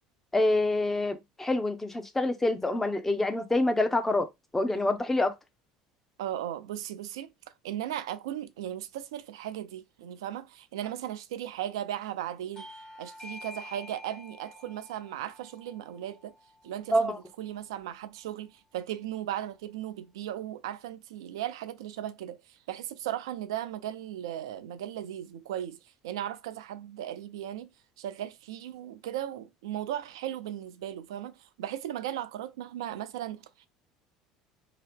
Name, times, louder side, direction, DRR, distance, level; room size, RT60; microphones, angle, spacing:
voice 1, 0.3-4.3 4.5-5.3 16.9-17.2, left 2 dB, 10° left, 0.6 m, -26 dB
voice 2, 6.2-7.3 7.6-12.7 13.0-16.3 16.6-27.7 28.0-33.7, right 11 dB, 70° right, 0.3 m, -37 dB
Bell / Doorbell, 12.6-17.6, left 2 dB, 35° left, 1.3 m, -49 dB
2.8 x 2.1 x 3.3 m
figure-of-eight pair, 65°, 3 cm